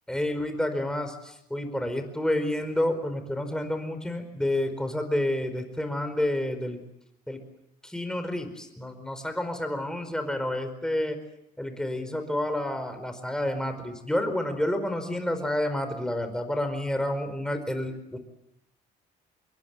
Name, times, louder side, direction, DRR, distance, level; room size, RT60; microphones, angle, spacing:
voice 1, 0.1-6.8 7.3-7.4 7.8-11.2 11.6-18.2, left 1 dB, 5° left, 7 dB, 4.8 m, -29 dB
26.5 x 22.5 x 7.5 m, 0.81 s
cardioid pair, 110°, 17 cm